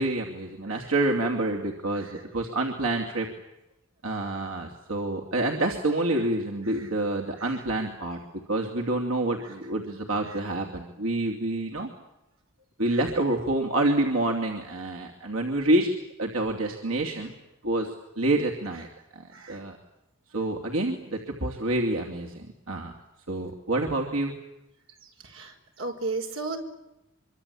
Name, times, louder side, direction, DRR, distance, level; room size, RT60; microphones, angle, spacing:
voice 1, 0.0-3.3 4.0-8.2 8.5-11.9 12.8-15.9 16.2-17.3 17.6-17.9 18.2-18.9 19.1-19.8 20.3-22.9 23.3-24.3, right 2 dB, 90° right, 1 dB, 3.0 m, -27 dB
voice 2, 25.8-26.6, right 3 dB, 75° right, 3 dB, 5.1 m, -32 dB
25.5 x 24.5 x 8.6 m, 0.90 s
head